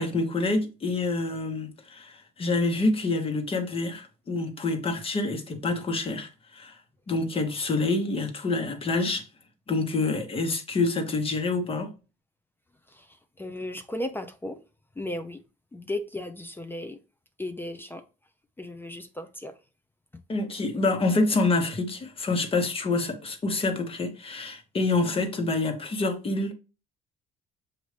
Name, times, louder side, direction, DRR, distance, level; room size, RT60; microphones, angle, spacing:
voice 1, 0.0-6.7 7.1-9.2 9.7-11.9 20.3-26.5, left 3 dB, 35° left, 1.1 m, -27 dB
voice 2, 13.4-14.6 15.0-15.4 15.7-17.0 17.4-18.0 18.6-19.5, left 1 dB, 10° left, 0.5 m, -35 dB
6.3 x 2.6 x 3.2 m
cardioid pair, 110°, 17 cm